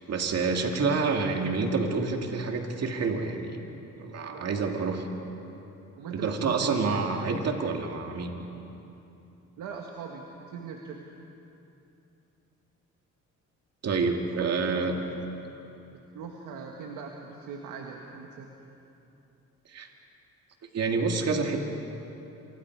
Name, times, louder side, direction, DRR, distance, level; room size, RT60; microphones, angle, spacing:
voice 1, 0.1-3.6 4.0-5.0 6.1-8.3 13.8-14.9 19.7-19.9 20.7-21.6, right 4 dB, 55° right, 3 dB, 2.5 m, -28 dB
voice 2, 4.3-5.0 6.0-7.0 9.6-11.0 14.3-15.3 15.9-18.5, right 5 dB, 90° right, 1 dB, 1.8 m, -41 dB
28.0 x 25.5 x 4.8 m, 2.9 s
cardioid pair, 90°, 30 cm